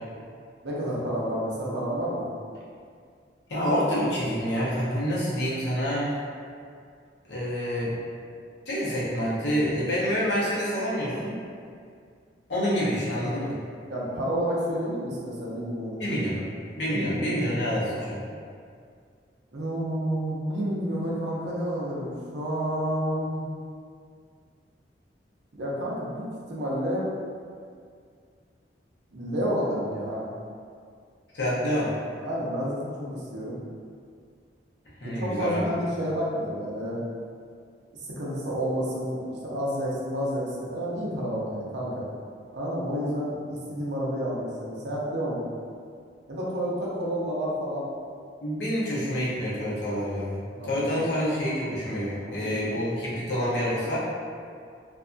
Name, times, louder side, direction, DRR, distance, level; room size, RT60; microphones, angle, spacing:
voice 1, 0.6-2.2 13.0-13.1 13.9-16.5 16.9-17.3 19.5-23.4 25.5-27.1 29.1-30.2 32.2-33.6 35.0-37.0 38.0-42.1 42.5-45.4 46.3-47.8 50.5-51.0 52.4-52.6, equal, 70° right, -6 dB, 0.6 m, -30 dB
voice 2, 3.5-6.1 7.3-7.9 8.7-11.4 12.5-13.5 16.0-16.4 16.8-18.2 31.3-31.9 35.0-35.7 48.4-54.0, equal, 75° left, -8 dB, 0.8 m, -27 dB
2.6 x 2.3 x 2.5 m, 2.2 s
head